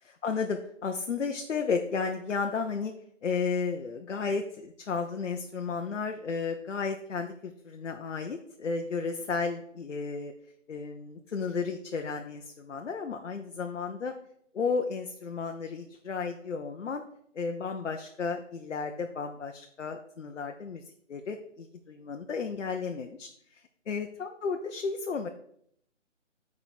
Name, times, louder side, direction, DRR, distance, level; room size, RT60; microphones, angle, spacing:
voice 1, 0.0-2.9 3.2-10.3 10.7-14.1 14.5-17.0 17.3-20.8 21.1-25.3, left 5 dB, 70° left, 4 dB, 0.8 m, -33 dB
6.8 x 4.8 x 4.2 m, 0.71 s
hypercardioid pair, 165°, 37 cm